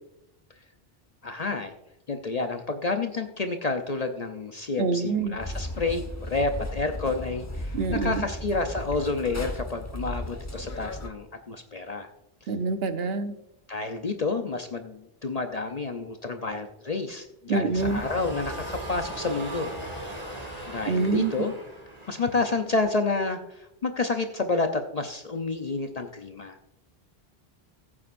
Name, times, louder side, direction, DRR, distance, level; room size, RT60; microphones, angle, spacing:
voice 1, 1.2-1.7 2.1-12.1 13.7-19.7 20.7-21.5 22.1-26.6, left 3 dB, 45° left, 6 dB, 0.7 m, -29 dB
voice 2, 4.8-5.4 7.7-8.2 12.5-13.3 17.5-18.0 20.9-21.3, right 4 dB, 75° right, 9 dB, 1.0 m, -26 dB
sound 1, 5.4-11.1, left 1 dB, 15° left, 1.0 m, -35 dB
sound 2, 17.7-22.9, right 1 dB, 40° right, 2.2 m, -38 dB
15.0 x 8.6 x 2.5 m, 0.85 s
omnidirectional pair, 1.0 m